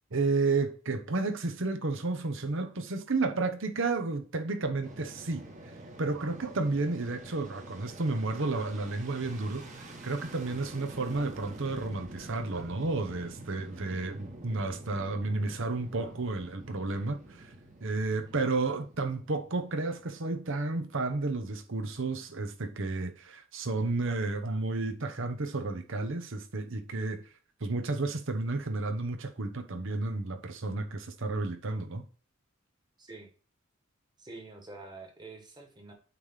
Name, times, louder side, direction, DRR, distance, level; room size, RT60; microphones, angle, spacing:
voice 1, 0.1-5.5 6.0-17.5 17.8-27.2 27.6-32.0, right 3 dB, 65° right, 1.0 m, -32 dB
Fixed-wing aircraft airplane, 4.8-20.0, right 1 dB, 35° right, 1.6 m, -47 dB
voice 2, 33.0-33.3 34.2-35.9, right 3 dB, 20° right, 1.6 m, -47 dB
8.5 x 3.4 x 5.7 m
head